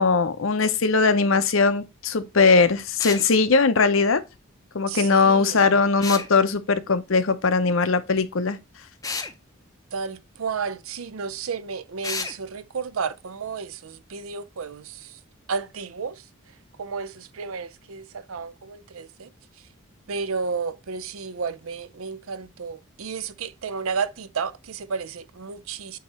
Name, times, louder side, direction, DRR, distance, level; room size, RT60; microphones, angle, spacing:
voice 1, 0.0-4.2 4.7-8.6, left 4 dB, 70° left, 0.7 m, -20 dB
sound 1, 3.0-3.3 6.0-6.3 9.0-9.3 12.0-12.4, left 4 dB, 15° left, 0.5 m, -30 dB
voice 2, 4.9-5.8 9.9-15.2 15.5-16.3 16.8-19.3 20.1-26.0, right 5 dB, 80° right, 0.6 m, -32 dB
8.4 x 3.0 x 4.2 m
head